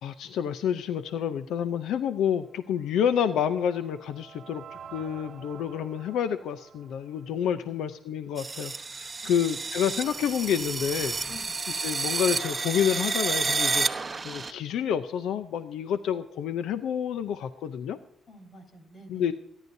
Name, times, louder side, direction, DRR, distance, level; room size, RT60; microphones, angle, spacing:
voice 1, 0.0-11.2 11.8-18.0 19.1-19.3, left 8 dB, 85° left, 10 dB, 0.6 m, -29 dB
sound 1, 2.8-8.0, right 7 dB, 60° right, 1.1 m, -49 dB
sound 2, 8.4-14.5, right 4 dB, 30° right, 0.9 m, -30 dB
voice 2, 11.3-11.6 18.3-19.3, left 1 dB, 45° left, 5 dB, 3.8 m, -49 dB
28.0 x 11.0 x 2.7 m, 0.77 s
cardioid pair, 90°, 0 cm